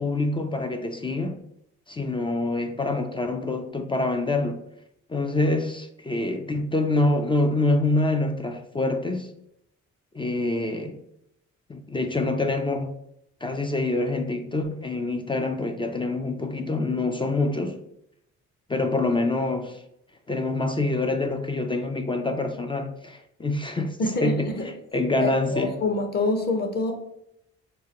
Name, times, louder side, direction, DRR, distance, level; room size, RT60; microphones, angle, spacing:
voice 1, 0.0-1.4 1.9-4.6 5.1-9.3 10.1-11.0 11.7-12.9 13.4-17.8 18.7-19.8 20.3-24.5 24.9-25.7, left 2 dB, 20° left, 0.3 m, -26 dB
voice 2, 24.0-24.7 25.2-26.9, left 2 dB, 35° left, 0.8 m, -26 dB
4.6 x 2.2 x 2.9 m
cardioid pair, 90°, 30 cm